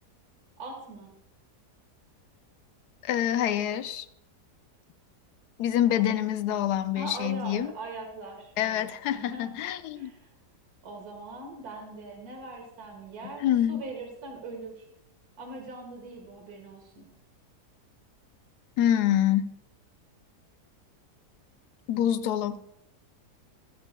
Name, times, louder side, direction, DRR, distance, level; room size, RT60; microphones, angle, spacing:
voice 1, 0.6-1.1 7.0-10.3 10.8-14.9 15.4-17.1, right 3 dB, 65° right, 2.0 m, -41 dB
voice 2, 3.0-4.1 5.6-7.7 8.6-10.1 13.4-13.8 18.8-19.5 21.9-22.6, left 11 dB, 75° left, 1.1 m, -26 dB
21.5 x 7.2 x 2.2 m
omnidirectional pair, 1.8 m